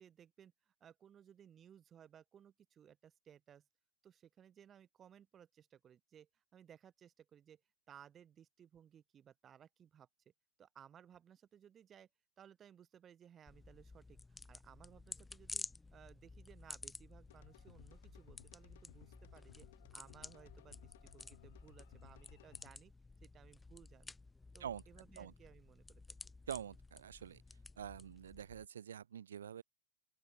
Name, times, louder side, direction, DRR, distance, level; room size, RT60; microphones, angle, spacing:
voice 1, 0.0-3.7 4.0-7.6 7.9-10.1 10.6-12.1 12.4-15.6 15.9-19.7 19.9-22.9 23.2-24.1 24.5-26.0, right 9 dB, 25° right, 2.8 m, -61 dB
sound 1, 13.5-28.7, left 3 dB, 10° left, 1.0 m, -53 dB
sound 2, 17.3-22.7, left 16 dB, 65° left, 2.0 m, -62 dB
voice 2, 26.5-27.4 27.8-29.6, right 9 dB, 85° right, 0.8 m, -46 dB
open air
hypercardioid pair, 125°, 0 cm